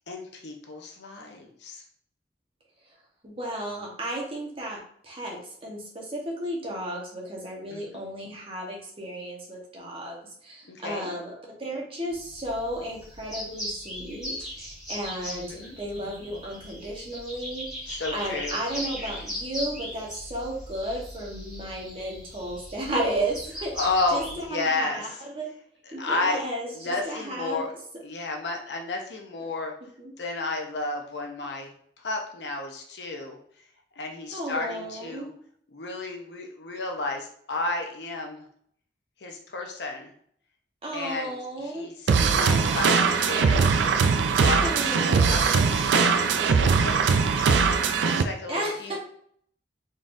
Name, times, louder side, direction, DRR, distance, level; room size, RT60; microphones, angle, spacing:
voice 1, 0.1-1.8 7.7-8.0 10.6-11.1 15.3-15.8 17.9-18.6 23.7-25.2 25.9-26.5 26.7-27.7 28.0-29.7 30.2-31.7 32.0-33.4 34.0-35.3 35.7-38.4 39.2-40.1 40.9-43.7 44.3-47.6 48.1-49.0, left 3 dB, 70° left, 2 dB, 0.7 m, -32 dB
voice 2, 3.2-11.3 11.6-23.7 24.1-24.2 24.5-25.5 25.9-27.7 30.0-30.1 34.3-35.3 40.8-43.1 44.6-45.7 48.5-49.0, right 1 dB, 30° right, -2 dB, 1.1 m, -34 dB
sound 1, 12.1-24.4, equal, 5° right, 1.5 m, -38 dB
sound 2, 42.1-48.2, right 5 dB, 80° right, 0.4 m, -21 dB
3.9 x 3.6 x 2.6 m, 0.62 s
head